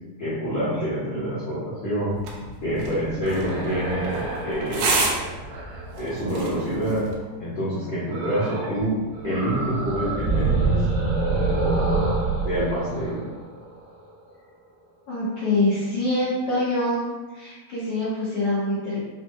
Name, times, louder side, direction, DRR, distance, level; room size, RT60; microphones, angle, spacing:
voice 1, 0.2-2.2 2.6-5.1 6.0-7.1 7.4-8.9 9.2-10.8 12.5-13.3, right 1 dB, 60° left, -13 dB, 1.7 m, -27 dB
sound 1, 2.1-7.1, right 3 dB, 90° right, 2.6 m, -30 dB
sound 2, 3.2-7.0 8.1-8.9 9.1-14.0, right 3 dB, 70° right, 2.8 m, -27 dB
voice 2, 15.1-17.0 17.3-19.0, left 2 dB, 80° left, -12 dB, 1.3 m, -25 dB
6.7 x 2.9 x 2.2 m, 1.2 s
omnidirectional pair, 4.3 m